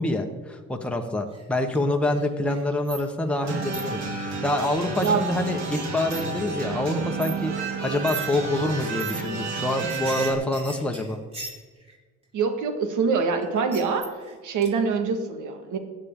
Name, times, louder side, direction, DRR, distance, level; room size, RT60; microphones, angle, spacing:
voice 1, 0.0-7.5 7.8-11.2, left 1 dB, 5° left, 3 dB, 1.2 m, -26 dB
sound 1, 1.3-1.8 2.1-3.4 3.7-3.8 5.0-5.4 6.1-6.2 6.6-6.8 7.2-7.3 8.0-8.3 8.8-9.2 9.5-11.9 13.4-14.3 14.6-14.7, right 2 dB, 20° right, 4.0 m, -38 dB
sound 2, 3.4-10.3, right 4 dB, 65° right, 3.8 m, -31 dB
voice 2, 12.3-14.1 14.4-15.8, right 5 dB, 80° right, 5 dB, 1.8 m, -24 dB
16.0 x 9.8 x 3.8 m, 1.4 s
cardioid pair, 90°, 30 cm